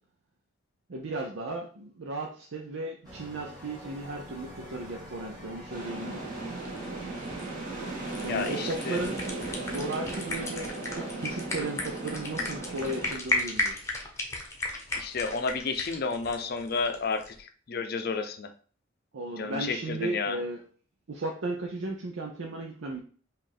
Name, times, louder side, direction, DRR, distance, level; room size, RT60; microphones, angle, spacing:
voice 1, 0.9-6.2 8.2-9.2 9.6-13.9 19.1-20.6 21.1-23.0, right 2 dB, 85° right, 0 dB, 0.6 m, -35 dB
sound 1, 3.0-8.5, equal, 20° right, 2.3 m, -46 dB
sound 2, 5.7-13.1, right 2 dB, 45° right, 1.3 m, -36 dB
sound 3, 6.6-17.4, left 2 dB, 15° left, 0.8 m, -35 dB
voice 2, 8.2-9.0 14.9-17.2 17.7-18.5 19.4-20.4, left 4 dB, 50° left, 7 dB, 0.5 m, -31 dB
5.4 x 2.5 x 3.4 m, 0.43 s
head